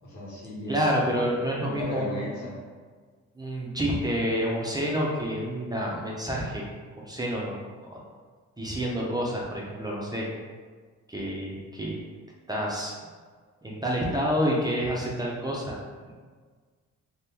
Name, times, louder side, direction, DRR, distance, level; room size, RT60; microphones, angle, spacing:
voice 1, 0.0-0.8 1.5-2.6, left 1 dB, 75° left, -6 dB, 1.2 m, -35 dB
voice 2, 0.7-2.2 3.4-6.6 7.0-7.6 7.9-8.0 8.6-10.3 11.1-11.9 12.5-12.9 13.6-15.7 16.0-16.1, equal, 15° right, -3 dB, 0.5 m, -28 dB
2.8 x 2.1 x 3.6 m, 1.5 s
cardioid pair, 90°, 30 cm